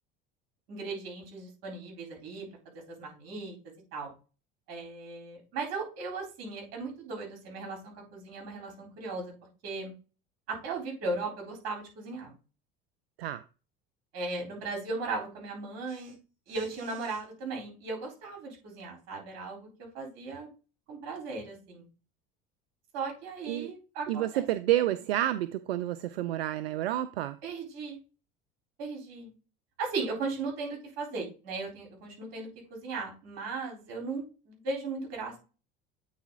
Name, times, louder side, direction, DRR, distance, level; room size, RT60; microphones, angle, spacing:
voice 1, 0.7-2.5 3.0-3.6 3.9-4.1 4.7-9.3 9.6-9.9 10.5-12.3 14.1-16.1 16.5-20.5 20.9-21.9 22.9-24.4 27.4-28.0 28.8-29.3 29.8-35.4, right 3 dB, 60° right, 3.9 m, -37 dB
voice 2, 24.1-27.4, right 13 dB, 90° right, 0.5 m, -29 dB
8.5 x 4.0 x 3.7 m
hypercardioid pair, 80°, 29 cm